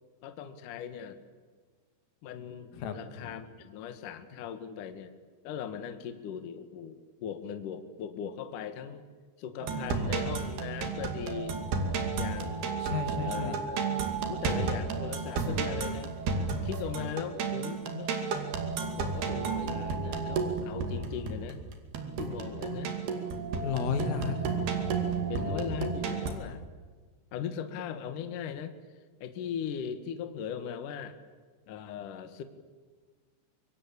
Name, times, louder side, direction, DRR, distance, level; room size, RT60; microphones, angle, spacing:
voice 1, 0.2-1.2 2.2-5.1 5.4-9.0 9.4-11.5 12.2-12.7 13.2-16.1 16.6-18.2 18.8-21.6 22.2-22.9 25.3-26.6 27.3-28.8 29.2-31.2 31.7-32.4, left 8 dB, 60° left, 9 dB, 2.3 m, -39 dB
voice 2, 2.7-3.4 12.8-13.6 23.6-25.7, left 6 dB, 85° left, 7 dB, 4.9 m, -34 dB
sound 1, 9.6-26.3, right 5 dB, 55° right, 4.1 m, -32 dB
25.5 x 23.5 x 8.7 m, 1.5 s
omnidirectional pair, 5.8 m